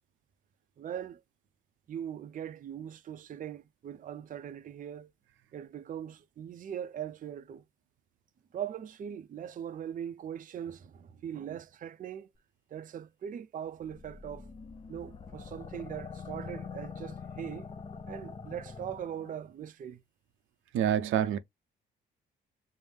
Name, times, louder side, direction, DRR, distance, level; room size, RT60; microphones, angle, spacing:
voice 1, 0.8-1.2 1.9-5.1 5.5-7.6 8.5-12.3 12.7-14.5 14.9-17.7 18.1-20.0, right 9 dB, 45° right, 0.5 m, -40 dB
sound 1, 13.8-19.4, left 5 dB, 25° left, 0.5 m, -44 dB
voice 2, 20.7-21.4, right 10 dB, 85° right, 0.6 m, -26 dB
5.4 x 2.0 x 3.3 m
cardioid pair, 90°, 20 cm